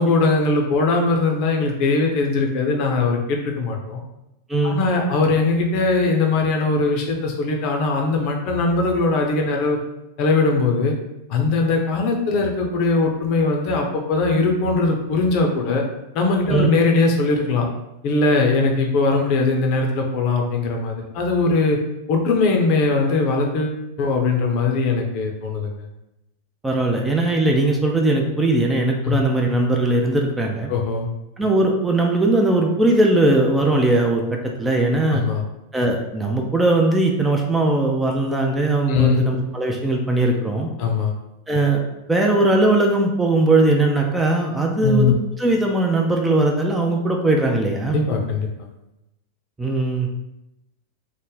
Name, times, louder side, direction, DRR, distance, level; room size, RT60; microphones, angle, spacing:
voice 1, 0.0-4.0 4.6-9.8 10.2-10.9 11.3-15.8 16.1-17.7 18.0-21.8 22.1-25.7 29.0-29.2 30.7-31.1 35.1-35.4 38.9-39.2 40.8-41.1 44.8-45.1 47.9-48.5, left 3 dB, 45° left, 1 dB, 0.6 m, -20 dB
voice 2, 26.6-30.7 31.4-35.2 35.7-40.7 41.5-41.8 42.1-48.0 49.6-50.2, right 2 dB, 10° right, 1 dB, 0.4 m, -19 dB
3.2 x 2.0 x 3.9 m, 0.90 s
figure-of-eight pair, 90°, 0 cm